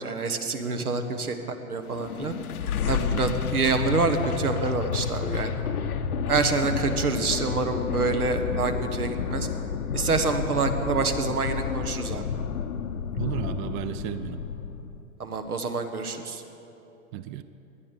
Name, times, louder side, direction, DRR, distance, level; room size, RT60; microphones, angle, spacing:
voice 1, 0.0-1.4 1.7-2.4 2.8-5.5 6.3-9.5 9.9-12.2 15.2-16.4, right 4 dB, 85° right, 7 dB, 1.6 m, -27 dB
sound 1, 1.9-15.0, left 7 dB, 80° left, 1.0 m, -30 dB
voice 2, 13.2-14.4 17.1-17.4, right 11 dB, 35° right, 12 dB, 0.6 m, -33 dB
19.0 x 11.0 x 6.8 m, 3.0 s
hypercardioid pair, 115°, 43 cm